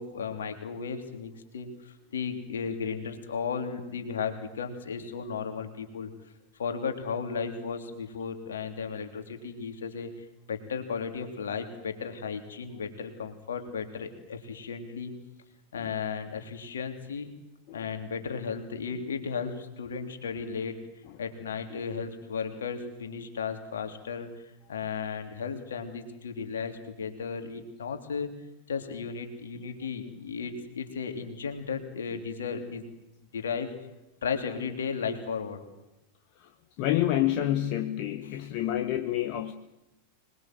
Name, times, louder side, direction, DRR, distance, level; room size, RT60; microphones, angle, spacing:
voice 1, 0.0-6.1 6.6-15.1 15.7-17.3 17.7-20.8 21.2-28.3 28.7-32.8 33.3-33.7 34.2-35.6 38.2-38.4, left 6 dB, 65° left, 6 dB, 3.3 m, -35 dB
voice 2, 36.8-39.5, left 13 dB, 45° left, 7 dB, 1.3 m, -28 dB
25.5 x 21.0 x 7.9 m, 0.92 s
figure-of-eight pair, 90°, 0 cm